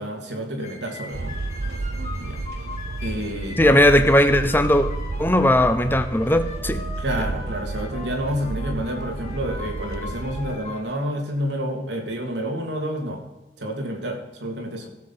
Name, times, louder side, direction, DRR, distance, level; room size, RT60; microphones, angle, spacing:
voice 1, 0.0-1.3 1.7-1.8 2.1-2.4 3.0-3.8 7.0-13.2 13.6-14.9, equal, 80° right, 2 dB, 2.8 m, -29 dB
sound 1, 0.6-10.8, left 4 dB, 45° left, 3.6 m, -40 dB
sound 2, 1.1-10.6, right 3 dB, 65° right, 0.7 m, -31 dB
voice 2, 3.6-4.9 5.2-6.8, left 1 dB, 10° left, 9 dB, 0.9 m, -18 dB
15.0 x 7.7 x 5.8 m, 1.0 s
head